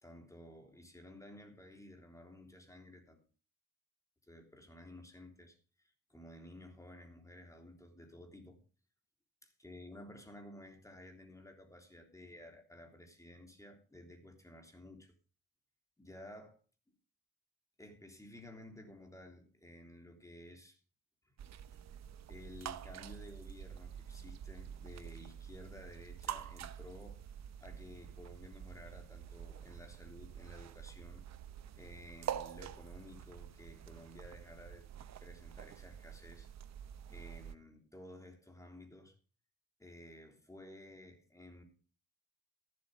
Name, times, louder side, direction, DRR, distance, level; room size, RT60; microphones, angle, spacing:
voice 1, 0.0-3.2 4.3-8.6 9.4-15.1 16.0-16.5 17.8-20.8 22.3-27.2 27.6-31.2 31.8-34.9 35.2-36.5 37.1-39.1 39.8-41.6, left 1 dB, 10° left, 3 dB, 3.4 m, -54 dB
sound 1, 21.4-37.5, right 9 dB, 60° right, 0.9 m, -47 dB
13.5 x 7.9 x 5.1 m, 0.38 s
cardioid pair, 90°, 30 cm